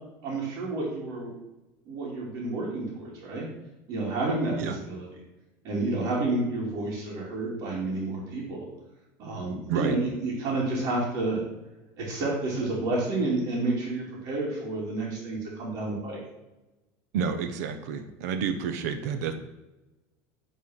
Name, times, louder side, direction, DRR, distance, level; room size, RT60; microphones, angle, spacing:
voice 1, 0.2-1.3 1.9-3.4 3.9-5.1 5.6-8.6 9.2-11.4 12.0-16.2, right 2 dB, 45° right, -8 dB, 2.8 m, -30 dB
voice 2, 17.1-19.3, right 6 dB, 90° right, 8 dB, 0.9 m, -29 dB
9.3 x 4.7 x 6.4 m, 1.0 s
cardioid pair, 170°, 8 cm